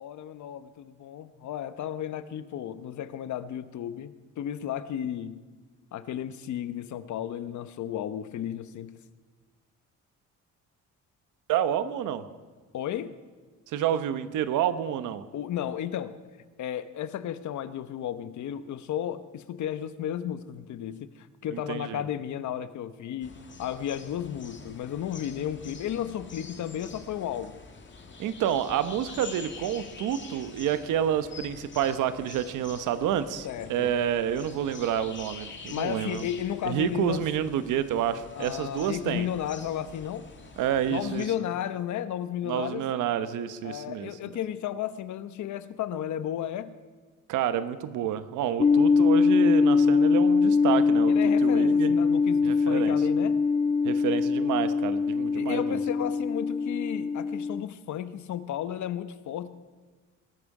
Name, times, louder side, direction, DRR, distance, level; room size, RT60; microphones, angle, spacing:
voice 1, 0.0-5.4 5.9-9.0 12.7-13.2 15.3-16.2 16.6-23.3 23.6-27.6 33.4-34.0 35.7-37.3 38.4-40.3 40.9-42.9 43.6-46.8 48.6-48.7 51.1-53.4 55.3-59.5, left 10 dB, 70° left, 13 dB, 1.0 m, -33 dB
voice 2, 11.5-12.3 13.7-15.2 21.5-22.0 28.2-36.3 36.6-39.3 40.6-41.3 42.4-44.1 47.3-51.1 51.4-51.9 52.4-53.0 53.8-55.8, right 9 dB, 90° right, 12 dB, 1.0 m, -29 dB
sound 1, 23.2-41.3, left 4 dB, 40° left, 2.3 m, -46 dB
sound 2, 48.6-57.6, left 4 dB, 20° left, 0.4 m, -23 dB
21.0 x 13.0 x 4.9 m, 1.4 s
cardioid pair, 90°, 30 cm